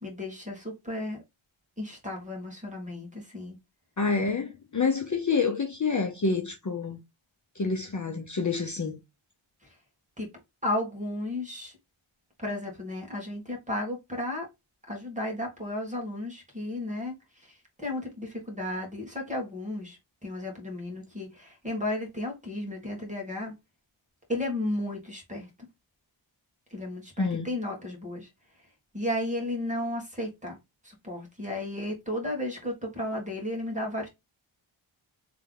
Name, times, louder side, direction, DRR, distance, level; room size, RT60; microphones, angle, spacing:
voice 1, 0.0-1.2 1.8-3.6 10.2-10.3 10.6-11.8 12.4-14.5 14.9-17.1 17.4-23.5 24.3-25.5 26.7-28.3 28.9-30.6 30.8-34.1, left 1 dB, 15° right, 1.8 m, -34 dB
voice 2, 4.0-7.0 7.6-9.0 27.2-27.5, left 4 dB, 35° left, 0.7 m, -28 dB
3.4 x 3.3 x 3.8 m
wide cardioid pair, 115°, 49 cm